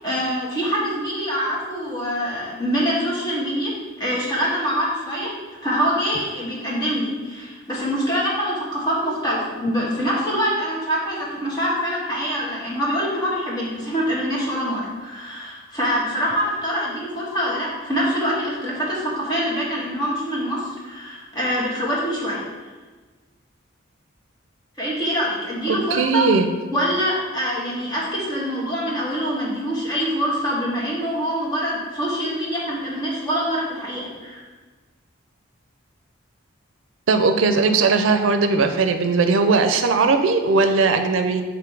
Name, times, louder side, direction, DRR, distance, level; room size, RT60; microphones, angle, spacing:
voice 1, 0.0-3.7 4.0-5.3 5.6-22.4 24.8-26.2 26.7-34.5, equal, 20° left, -5 dB, 1.5 m, -25 dB
voice 2, 25.7-26.5 37.1-41.4, right 4 dB, 85° right, 7 dB, 0.5 m, -18 dB
7.0 x 3.0 x 4.6 m, 1.3 s
head